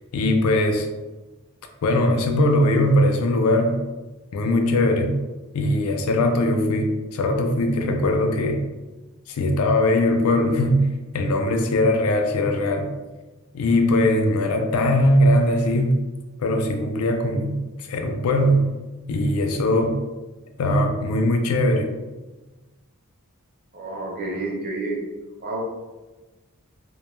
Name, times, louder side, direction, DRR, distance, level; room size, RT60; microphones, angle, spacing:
voice 1, 0.1-0.9 1.8-3.8 4.3-5.2 5.5-8.7 9.3-12.9 13.5-16.0 16.4-18.7 19.1-20.0 20.6-21.9, left 1 dB, 75° left, 5 dB, 0.4 m, -20 dB
voice 2, 23.7-25.0 25.4-25.6, right 2 dB, 45° right, -2 dB, 0.6 m, -29 dB
2.2 x 2.1 x 3.0 m, 1.1 s
head